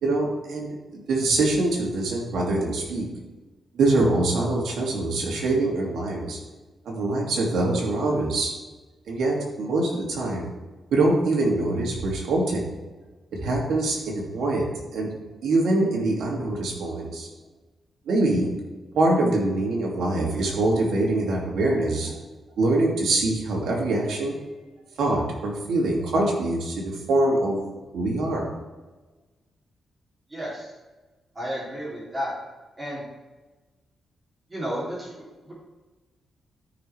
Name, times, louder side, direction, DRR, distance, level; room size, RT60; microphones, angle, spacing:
voice 1, 0.0-3.1 3.7-6.4 6.8-8.5 9.1-10.5 10.9-12.6 13.3-15.1 15.4-17.3 18.1-18.5 18.9-22.1 22.6-24.3 25.0-27.6 27.9-28.5, right 2 dB, 80° right, -2 dB, 2.7 m, -24 dB
voice 2, 30.3-30.7 31.3-32.3 32.8-33.0 34.5-35.5, equal, 25° right, -7 dB, 3.3 m, -32 dB
13.5 x 6.2 x 3.5 m, 1.2 s
cardioid pair, 100°, 0 cm